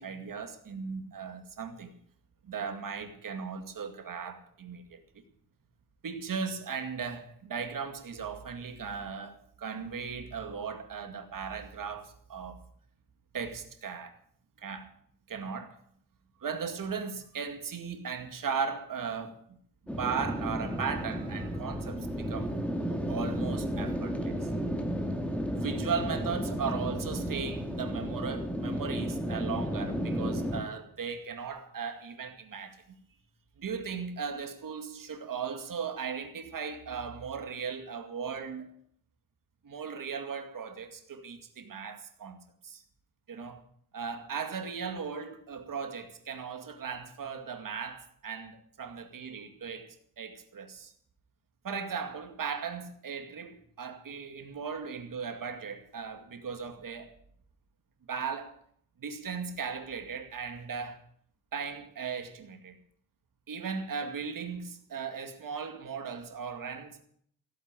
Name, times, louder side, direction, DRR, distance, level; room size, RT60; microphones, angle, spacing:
voice 1, 0.0-1.9 2.4-5.2 6.0-12.6 13.3-14.1 14.6-14.9 15.3-15.8 16.4-19.6 20.0-24.5 25.6-32.8 33.6-38.7 39.6-42.8 43.3-43.6 43.9-50.9 51.6-57.1 58.1-58.6 59.0-61.0 61.5-62.8 63.5-67.0, right 6 dB, 60° right, 2.2 m, -37 dB
sound 1, 19.9-30.6, equal, 5° left, 2.0 m, -33 dB
16.0 x 9.0 x 8.9 m
wide cardioid pair, 135°, 37 cm